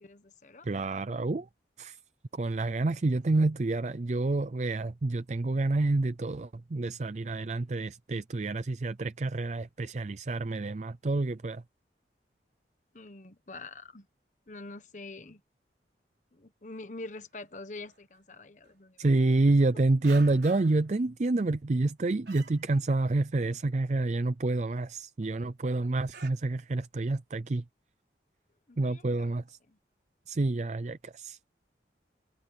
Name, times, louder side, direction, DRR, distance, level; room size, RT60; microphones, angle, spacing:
voice 1, 0.0-0.8 12.9-14.1 14.5-15.4 16.3-19.3 28.7-29.0 29.7-29.8, left 2 dB, 45° left, 1.3 m, -45 dB
voice 2, 0.6-1.5 1.8-2.0 2.3-11.6 19.0-27.6 28.8-29.6 30.3-31.4, right 2 dB, 40° right, 0.5 m, -28 dB
sound 1, 17.1-17.3 17.5-18.2 18.6-18.7 19.3-19.7 20.0-20.9 21.3-21.9 22.3-23.1 23.4-23.6 23.9-24.0 24.2-24.9 25.2-25.4 25.6-25.7 26.1-26.3, right 4 dB, 70° right, 4.4 m, -49 dB
head